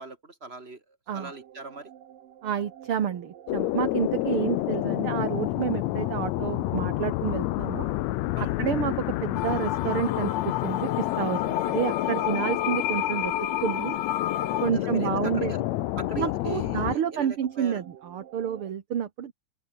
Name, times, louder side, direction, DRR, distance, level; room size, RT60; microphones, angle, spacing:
voice 1, 0.0-1.9 8.4-8.5 12.1-12.6 14.5-15.6 16.0-17.8, right 3 dB, 15° right, 4.2 m, -41 dB
sound 1, 1.1-18.7, right 10 dB, 80° right, 3.5 m, -48 dB
voice 2, 2.4-7.9 8.6-10.3 10.6-13.3 13.6-14.0 14.6-15.5 16.2-19.3, right 9 dB, 50° right, 2.1 m, -29 dB
sound 2, 3.5-17.0, left 19 dB, 90° left, 1.5 m, -29 dB
sound 3, 9.4-14.7, left 12 dB, 75° left, 2.8 m, -30 dB
open air
omnidirectional pair, 3.8 m